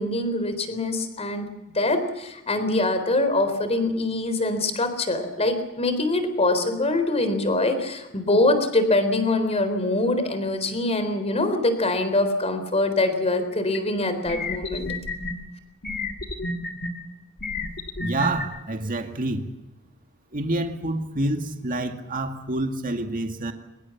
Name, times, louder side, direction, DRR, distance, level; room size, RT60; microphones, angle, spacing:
voice 1, 0.0-1.5 1.7-14.9, left 2 dB, 30° left, 9 dB, 4.0 m, -24 dB
sound 1, 13.7-13.8 14.3-15.3 15.8-16.9 17.4-18.5, left 3 dB, 50° left, 2.4 m, -30 dB
voice 2, 18.0-19.5 20.3-23.5, right 2 dB, 40° right, 5 dB, 2.1 m, -27 dB
24.0 x 21.5 x 7.3 m, 0.97 s
head